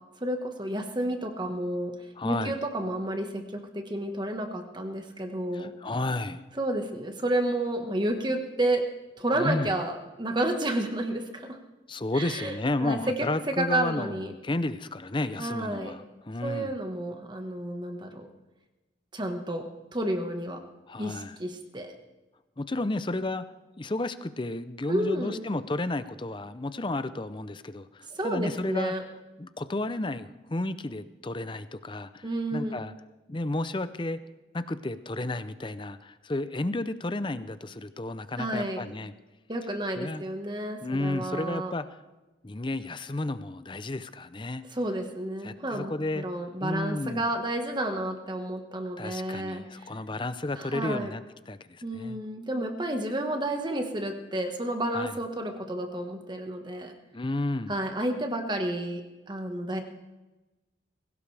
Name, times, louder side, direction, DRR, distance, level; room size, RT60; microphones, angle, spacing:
voice 1, 0.2-1.9 2.2-5.7 6.6-8.8 9.1-11.6 12.1-12.5 12.8-13.1 13.5-14.3 15.4-15.9 16.4-18.3 19.1-20.6 21.0-21.9 24.9-25.4 28.1-29.0 32.2-32.8 38.4-38.8 39.5-41.7 44.7-49.9 50.6-51.1 51.8-56.9 57.7-59.8, right 1 dB, 25° right, 5 dB, 1.5 m, -31 dB
voice 2, 2.2-2.5 5.5-6.4 9.3-9.7 11.9-16.8 20.9-21.4 22.6-23.4 23.8-28.9 29.4-32.9 33.3-34.2 34.5-39.1 40.0-40.2 40.8-41.9 42.4-44.6 45.4-46.3 46.6-47.3 49.0-52.2 54.9-55.1 57.1-57.7, left 2 dB, 25° left, 13 dB, 0.6 m, -32 dB
21.0 x 17.5 x 3.5 m, 1.1 s
head